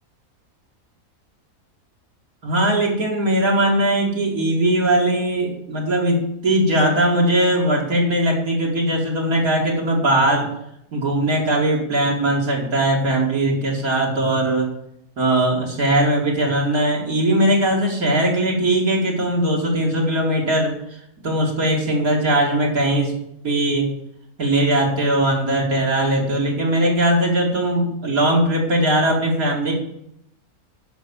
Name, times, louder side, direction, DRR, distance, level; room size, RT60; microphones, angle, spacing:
voice 1, 2.4-10.5 10.9-14.7 15.2-23.1 23.4-23.9 24.4-29.7, right 1 dB, 70° right, -2 dB, 2.9 m, -20 dB
11.0 x 6.1 x 7.1 m, 0.77 s
omnidirectional pair, 1.6 m